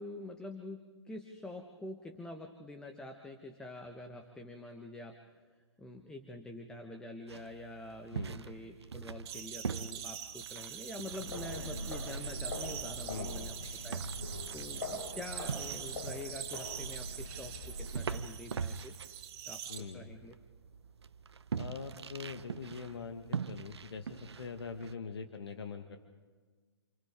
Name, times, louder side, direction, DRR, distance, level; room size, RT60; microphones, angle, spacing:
voice 1, 0.0-5.4 5.8-13.6 13.8-14.0 14.5-18.9 19.5-20.3, left 2 dB, 5° left, 4 dB, 1.2 m, -46 dB
sound 1, 7.3-24.9, right 6 dB, 70° right, 0.9 m, -44 dB
voice 2, 8.1-8.5 13.1-13.6 19.7-20.1 21.6-26.0, left 5 dB, 65° left, 6 dB, 1.6 m, -43 dB
sound 2, 9.3-19.8, right 10 dB, 35° right, 2.6 m, -44 dB
sound 3, 11.1-18.1, left 1 dB, 80° left, 7.0 m, -42 dB
29.0 x 28.5 x 3.7 m, 1.5 s
figure-of-eight pair, 130°, 14 cm